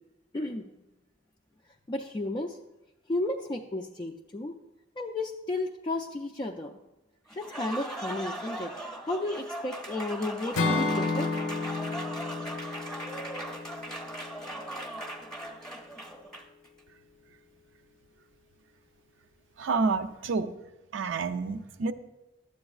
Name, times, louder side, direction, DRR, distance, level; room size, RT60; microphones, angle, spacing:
voice 1, 0.3-0.6 1.9-2.6 3.1-4.5 5.0-6.7 7.4-8.7 9.0-11.3, left 2 dB, 25° left, 1 dB, 0.3 m, -33 dB
Applause, 7.3-16.7, right 1 dB, ahead, 0.8 m, -39 dB
Acoustic guitar / Strum, 10.5-14.6, left 3 dB, 90° left, 0.6 m, -31 dB
voice 2, 19.6-20.5 20.9-21.9, right 4 dB, 75° right, 8 dB, 0.5 m, -29 dB
11.5 x 7.8 x 2.4 m, 1.0 s
head